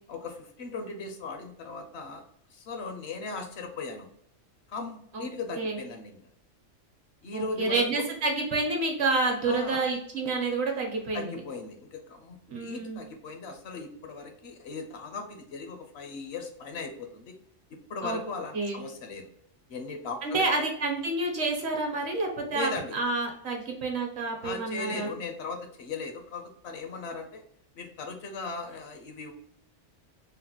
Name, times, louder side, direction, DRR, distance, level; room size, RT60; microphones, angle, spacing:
voice 1, 0.1-2.2 2.5-4.1 4.7-6.2 7.2-8.1 9.4-9.9 11.1-17.4 17.9-19.3 19.7-20.5 22.5-23.0 24.4-27.4 27.7-29.3, left 4 dB, 65° left, 5 dB, 0.8 m, -38 dB
voice 2, 7.3-11.4 12.5-13.0 18.0-18.2 18.5-18.8 20.2-25.1, right 3 dB, 65° right, 1 dB, 1.1 m, -29 dB
3.8 x 2.1 x 2.8 m, 0.71 s
omnidirectional pair, 1.3 m